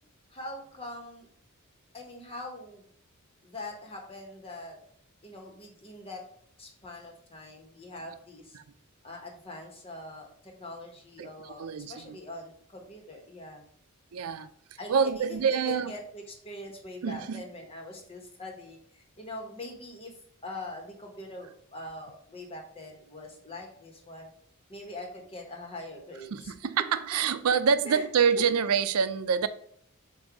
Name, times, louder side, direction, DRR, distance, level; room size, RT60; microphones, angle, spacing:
voice 1, 0.3-1.3 1.9-2.8 3.4-4.8 5.2-6.2 6.6-8.6 9.0-13.6 14.8-20.2 20.4-24.3 24.7-26.5 27.8-28.1 28.3-28.4, left 1 dB, 25° left, 1 dB, 1.3 m, -43 dB
voice 2, 11.6-12.1 14.1-14.5 14.9-15.9 17.0-17.4 26.3-29.5, right 6 dB, 85° right, 12 dB, 0.5 m, -26 dB
7.7 x 2.6 x 4.8 m, 0.63 s
head